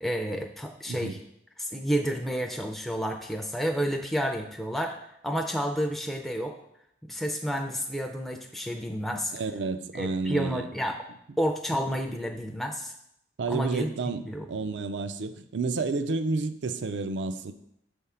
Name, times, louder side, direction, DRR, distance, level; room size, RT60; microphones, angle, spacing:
voice 1, 0.0-1.2 1.6-5.0 5.2-6.5 7.1-9.3 9.9-11.0 11.4-12.9 13.5-13.9 14.3-14.5, equal, ahead, 2 dB, 0.4 m, -30 dB
voice 2, 0.9-1.2 9.3-10.7 13.4-17.5, right 3 dB, 70° right, 10 dB, 0.5 m, -30 dB
6.6 x 3.5 x 5.6 m, 0.77 s
head